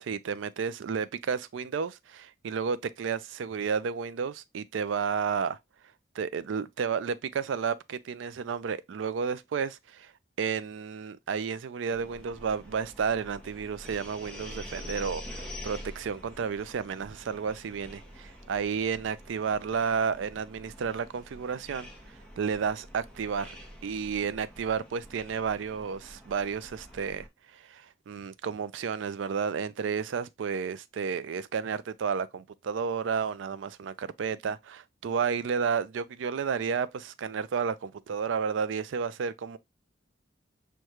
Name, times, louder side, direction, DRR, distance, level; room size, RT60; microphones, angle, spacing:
voice 1, 0.1-5.6 6.2-10.1 10.4-23.5 23.8-27.3 27.5-39.6, right 6 dB, 75° right, 0.4 m, -32 dB
sound 1, 11.9-27.3, equal, 5° left, 0.8 m, -46 dB
6.3 x 2.2 x 2.9 m
head